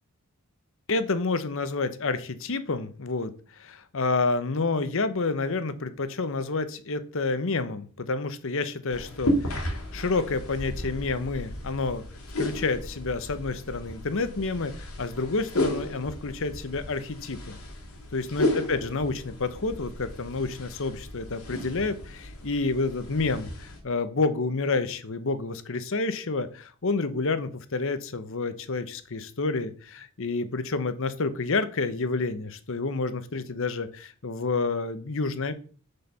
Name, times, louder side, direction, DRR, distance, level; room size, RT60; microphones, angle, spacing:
voice 1, 0.9-12.0 12.4-17.6 18.1-35.5, left 3 dB, 65° left, 12 dB, 0.9 m, -29 dB
sound 1, 8.9-23.8, left 1 dB, 80° left, 3.0 m, -33 dB
6.7 x 6.6 x 5.5 m, 0.41 s
head